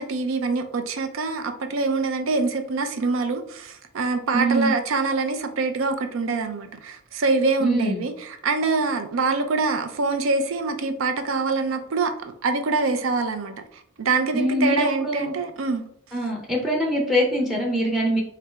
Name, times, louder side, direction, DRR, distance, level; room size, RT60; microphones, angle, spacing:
voice 1, 0.0-8.1 8.4-13.5 14.0-15.8, right 3 dB, 65° right, 7 dB, 0.5 m, -25 dB
voice 2, 4.3-4.7 7.6-8.0 14.3-15.3 16.1-18.2, equal, ahead, -2 dB, 0.6 m, -23 dB
3.8 x 3.3 x 3.3 m, 0.67 s
head